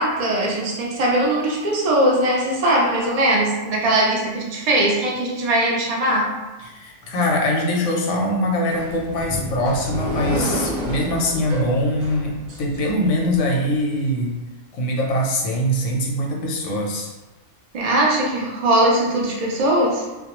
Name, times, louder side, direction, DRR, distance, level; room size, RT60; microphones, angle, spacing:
voice 1, 0.0-6.3 17.7-20.0, right 1 dB, 75° right, -2 dB, 0.3 m, -20 dB
voice 2, 6.6-14.3 14.7-17.1, left 1 dB, 90° left, 0 dB, 1.0 m, -22 dB
sound 1, 8.7-13.4, equal, 60° right, 0.9 m, -29 dB
2.3 x 2.1 x 2.9 m, 1.1 s
omnidirectional pair, 1.3 m